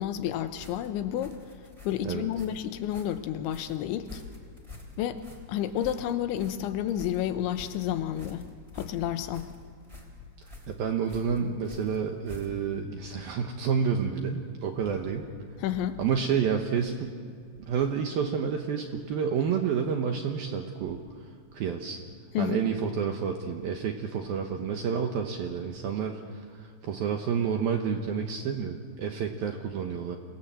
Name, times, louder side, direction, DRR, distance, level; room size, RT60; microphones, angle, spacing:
voice 1, 0.0-1.4 1.8-4.2 5.0-5.2 5.5-8.5 8.7-9.5 15.6-16.0 22.3-22.7, left 11 dB, 80° left, 10 dB, 3.1 m, -30 dB
sound 1, 0.6-12.8, left 3 dB, 10° right, 2.6 m, -48 dB
voice 2, 10.4-15.3 16.0-17.2 17.6-21.0 21.5-22.0 22.4-30.2, right 7 dB, 70° right, 4 dB, 2.3 m, -29 dB
27.5 x 20.0 x 7.5 m, 2.1 s
omnidirectional pair, 5.7 m